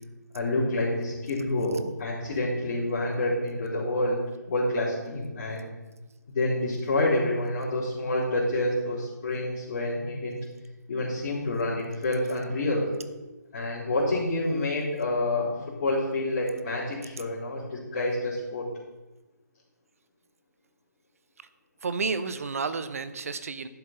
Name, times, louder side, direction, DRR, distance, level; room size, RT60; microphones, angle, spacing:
voice 1, 0.3-4.2 4.5-5.7 6.3-10.4 10.9-12.9 13.5-18.7, left 2 dB, 40° left, -13 dB, 3.7 m, -28 dB
voice 2, 21.8-23.7, right 4 dB, 50° right, 12 dB, 0.7 m, -31 dB
11.0 x 7.3 x 4.2 m, 1.1 s
figure-of-eight pair, 140°, 10 cm